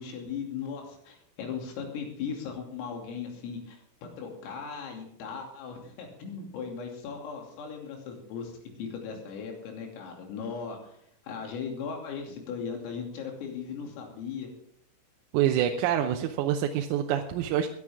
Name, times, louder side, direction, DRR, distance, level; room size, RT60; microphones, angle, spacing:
voice 1, 0.0-11.0 11.3-14.5, left 6 dB, 90° left, 2 dB, 5.4 m, -38 dB
voice 2, 15.3-17.7, right 10 dB, 85° right, 4 dB, 3.5 m, -26 dB
19.5 x 11.5 x 3.6 m, 0.68 s
omnidirectional pair, 5.9 m